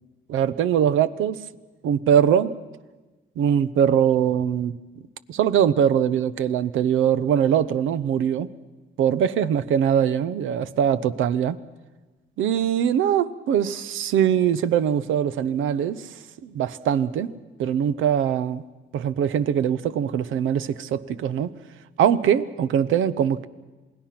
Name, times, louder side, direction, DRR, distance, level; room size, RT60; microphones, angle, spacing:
voice 1, 0.3-1.4 1.8-2.5 3.4-4.7 5.3-8.5 9.0-11.6 12.4-16.1 16.4-17.3 17.6-18.6 18.9-21.5 22.0-23.5, right 9 dB, 80° right, 0.8 m, -22 dB
27.5 x 19.5 x 6.0 m
cardioid pair, 90°, 20 cm